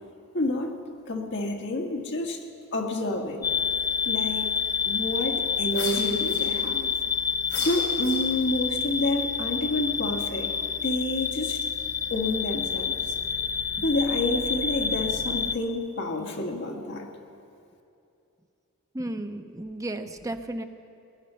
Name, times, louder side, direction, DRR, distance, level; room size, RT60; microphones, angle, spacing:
voice 1, 0.3-0.8 1.1-2.4 2.7-3.5 4.0-4.5 4.8-6.9 7.7-10.5 10.8-11.7 12.1-13.1 13.8-17.1, left 2 dB, 55° left, 2 dB, 1.7 m, -29 dB
sound 1, 3.4-15.6, left 6 dB, 15° left, 0.3 m, -28 dB
sound 2, 5.7-6.9 7.4-8.6, left 4 dB, 85° left, 3.5 m, -37 dB
voice 2, 18.9-20.6, right 1 dB, 15° right, 7 dB, 0.7 m, -33 dB
20.5 x 11.0 x 5.6 m, 2.7 s
head